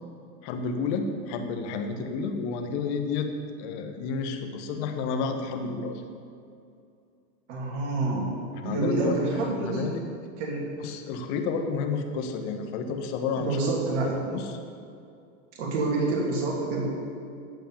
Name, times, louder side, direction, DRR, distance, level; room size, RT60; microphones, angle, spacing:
voice 1, 0.4-3.3 3.6-6.0 8.5-10.0 10.8-13.7 14.3-14.6, left 4 dB, 60° left, 6 dB, 1.6 m, -31 dB
voice 2, 7.5-8.3 8.6-9.9 10.4-10.8 13.4-14.4 15.6-16.9, right 3 dB, 75° right, -3 dB, 3.2 m, -27 dB
15.0 x 5.4 x 7.4 m, 2.4 s
hypercardioid pair, 110°, 37 cm